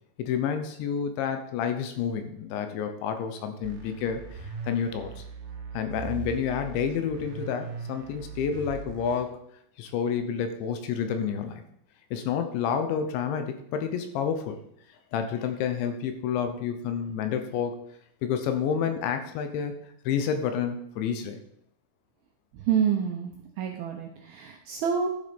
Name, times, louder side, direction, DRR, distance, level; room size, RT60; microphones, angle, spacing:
voice 1, 0.2-5.2 5.7-9.4 9.8-11.6 12.1-14.6 15.1-17.8 18.2-19.7 20.1-21.4, left 7 dB, 75° left, 7 dB, 3.2 m, -29 dB
sound 1, 3.6-9.2, right 6 dB, 55° right, 2.6 m, -40 dB
voice 2, 22.5-23.3 23.6-25.1, right 7 dB, 75° right, 2 dB, 2.3 m, -27 dB
12.0 x 7.2 x 5.3 m, 0.72 s
omnidirectional pair, 5.5 m